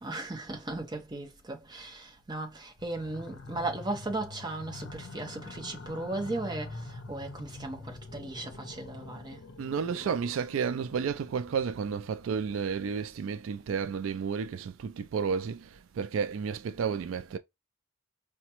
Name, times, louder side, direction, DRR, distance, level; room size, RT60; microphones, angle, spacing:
voice 1, 0.0-9.4, right 2 dB, 20° right, 0.9 m, -37 dB
sound 1, 2.8-13.3, left 3 dB, 65° left, 0.6 m, -46 dB
voice 2, 9.6-15.7 16.0-17.4, right 6 dB, 80° right, 0.3 m, -31 dB
4.9 x 2.2 x 2.9 m
head